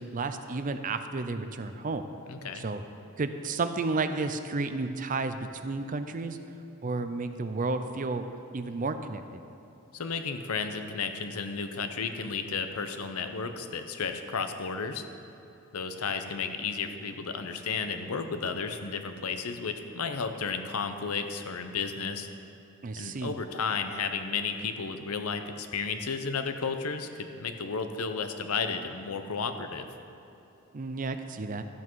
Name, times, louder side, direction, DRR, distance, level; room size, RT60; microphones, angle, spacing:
voice 1, 0.0-2.0 2.6-2.8 3.2-6.4 6.8-8.2 8.5-9.2 22.8-23.4 30.7-31.6, right 3 dB, 35° right, 9 dB, 0.5 m, -32 dB
voice 2, 2.3-2.6 9.9-15.0 15.7-22.3 23.0-29.9, left 5 dB, 80° left, 7 dB, 0.7 m, -33 dB
12.5 x 8.4 x 4.6 m, 2.8 s
head